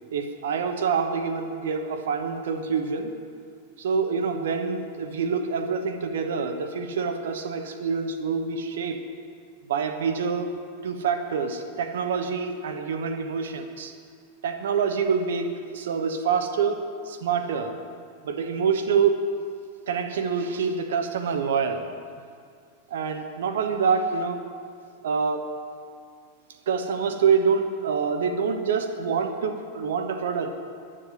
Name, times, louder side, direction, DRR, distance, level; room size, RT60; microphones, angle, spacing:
voice 1, 0.1-3.1 3.8-9.0 9.7-13.9 14.4-17.8 18.2-19.3 19.9-21.9 22.9-24.5 25.0-25.5 26.7-30.6, right 5 dB, 60° right, 7 dB, 0.9 m, -26 dB
11.5 x 7.6 x 9.6 m, 2.2 s
figure-of-eight pair, 90°, 0 cm